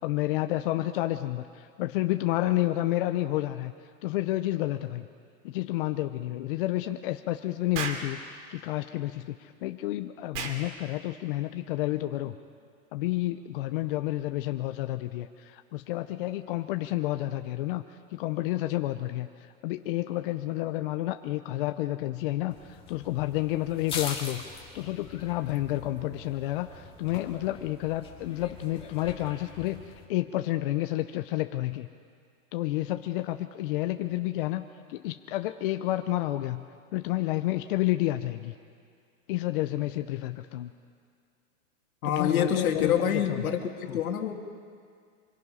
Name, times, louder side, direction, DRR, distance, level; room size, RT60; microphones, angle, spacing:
voice 1, 0.0-3.7 4.0-5.1 5.4-12.4 12.9-17.8 18.1-19.3 19.6-24.4 24.7-29.8 30.1-31.9 32.5-38.6 39.3-40.7 42.0-43.5 43.9-44.0, left 16 dB, 40° left, 8 dB, 0.7 m, -30 dB
Explosion, 7.7-8.1 10.3-10.6, right 5 dB, 55° right, 2.7 m, -33 dB
sound 1, 22.5-30.1, left 4 dB, 10° left, 2.1 m, -43 dB
voice 2, 42.0-44.3, left 8 dB, 80° left, 4 dB, 2.3 m, -26 dB
25.0 x 23.5 x 5.6 m, 2.1 s
supercardioid pair, 155°, 42 cm